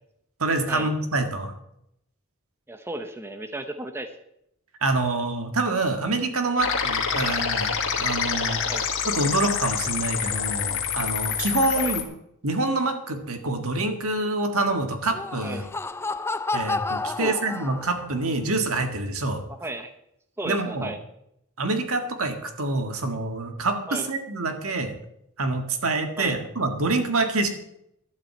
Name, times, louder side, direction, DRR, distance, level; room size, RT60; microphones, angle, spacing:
voice 1, 0.4-1.5 4.8-8.6 9.1-12.0 12.4-15.6 16.5-19.4 20.5-20.9 21.6-25.0 25.4-27.5, right 2 dB, 70° right, 5 dB, 1.8 m, -26 dB
voice 2, 2.7-4.1 7.1-7.3 8.6-8.8 11.8-11.9 15.4-15.7 17.2-17.7 19.5-19.9 20.4-21.0 23.9-24.1 26.2-26.4, right 1 dB, 10° right, 7 dB, 0.8 m, -34 dB
sound 1, 6.6-12.0, left 7 dB, 60° left, 1.6 m, -27 dB
Laughter, 15.0-18.2, left 3 dB, 10° left, 0.4 m, -30 dB
11.5 x 7.6 x 7.8 m, 0.78 s
head